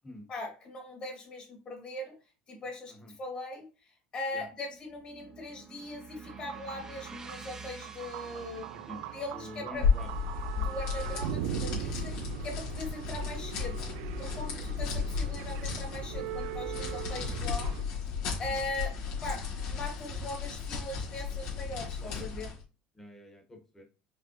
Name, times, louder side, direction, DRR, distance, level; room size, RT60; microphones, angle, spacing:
voice 1, 0.3-2.2 2.5-3.7 4.1-8.7 9.1-9.9 10.6-12.2 12.4-13.8 14.2-17.7 18.4-22.5, left 2 dB, 35° left, 0 dB, 2.1 m, -40 dB
sound 1, 4.5-12.7, right 4 dB, 20° right, 0.6 m, -50 dB
sound 2, 6.2-17.8, right 12 dB, 80° right, 0.4 m, -41 dB
voice 2, 8.7-10.1 10.6-10.7 14.3-15.1 18.3-18.6 22.0-22.3 22.9-23.8, left 1 dB, 15° left, 3 dB, 1.2 m, -48 dB
sound 3, 9.7-22.6, left 5 dB, 80° left, 2.1 m, -34 dB
5.2 x 3.3 x 2.9 m, 0.32 s
cardioid pair, 140°, 3 cm